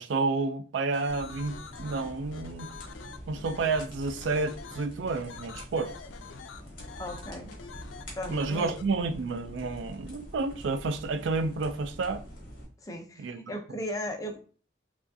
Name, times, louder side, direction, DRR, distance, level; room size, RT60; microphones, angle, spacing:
voice 1, 0.0-2.7 3.3-6.0 8.3-12.2 13.2-13.4, right 3 dB, 80° right, 0.4 m, -30 dB
sound 1, 0.9-8.8, left 6 dB, 85° left, 0.4 m, -46 dB
sound 2, 1.1-12.6, equal, 45° left, 1.7 m, -45 dB
voice 2, 7.0-7.5 8.2-8.8 12.8-14.4, equal, 20° left, 0.5 m, -36 dB
4.7 x 2.4 x 2.6 m
head